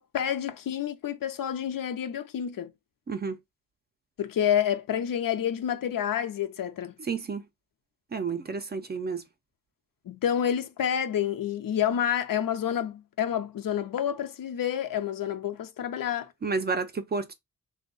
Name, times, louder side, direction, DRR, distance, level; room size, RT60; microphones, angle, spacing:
voice 1, 0.0-2.7 4.2-6.9 10.1-16.3, left 9 dB, 75° left, 0.6 m, -29 dB
voice 2, 3.1-3.4 7.1-7.4 8.1-9.2 16.4-17.3, right 4 dB, 30° right, 0.4 m, -30 dB
3.4 x 2.2 x 3.7 m
wide cardioid pair, 155°, 34 cm